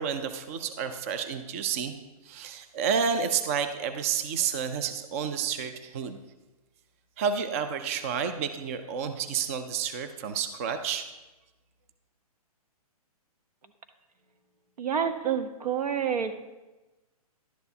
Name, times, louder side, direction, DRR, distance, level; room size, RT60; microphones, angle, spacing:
voice 1, 0.0-1.9 2.2-6.2 7.2-11.0, right 7 dB, 25° right, 9 dB, 0.3 m, -30 dB
voice 2, 14.8-16.4, right 8 dB, 90° right, 8 dB, 1.0 m, -28 dB
11.5 x 9.0 x 2.7 m, 1.1 s
hypercardioid pair, 160°, 20 cm